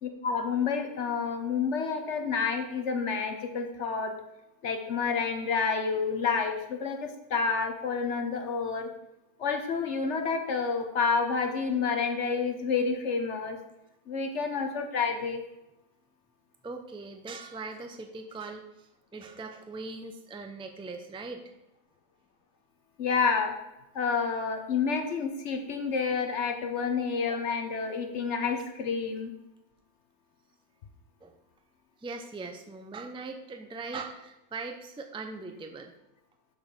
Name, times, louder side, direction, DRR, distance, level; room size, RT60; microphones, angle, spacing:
voice 1, 0.0-4.1 4.6-8.9 9.4-13.6 14.1-15.4 23.0-23.5 23.9-29.3, left 5 dB, 60° left, 5 dB, 1.1 m, -29 dB
voice 2, 16.6-21.4 31.2-31.3 32.0-35.9, right 3 dB, 5° right, 5 dB, 0.4 m, -40 dB
6.6 x 5.4 x 6.7 m, 0.94 s
omnidirectional pair, 1.5 m